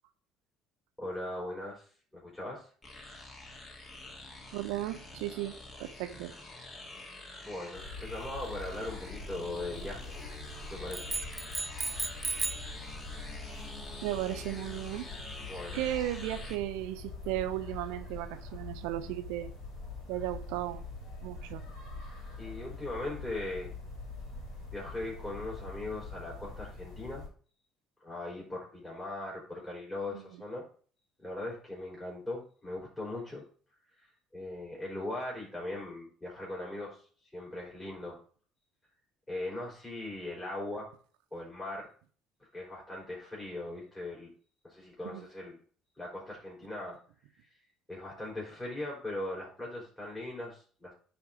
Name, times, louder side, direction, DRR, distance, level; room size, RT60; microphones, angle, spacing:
voice 1, 1.0-1.9 2.1-2.7 7.4-10.3 10.6-11.2 15.5-15.8 22.4-23.7 24.7-27.3 28.0-30.7 31.2-33.4 34.0-37.0 37.3-38.2 39.3-40.9 41.3-41.9 42.5-44.3 44.6-45.6 46.0-47.0 47.5-47.6 47.9-50.9, left 2 dB, 15° left, 3.7 m, -39 dB
sound 1, 2.8-16.6, left 2 dB, 35° left, 2.2 m, -46 dB
voice 2, 4.5-6.3 14.0-15.1 15.7-19.5 20.1-20.8 21.2-21.6 30.1-30.2 45.0-45.3, right 14 dB, 75° right, 0.7 m, -35 dB
sound 2, 7.7-27.3, left 3 dB, 65° left, 2.7 m, -44 dB
sound 3, 10.9-12.7, right 3 dB, 20° right, 0.5 m, -35 dB
9.7 x 3.6 x 4.9 m
hypercardioid pair, 60°, 0 cm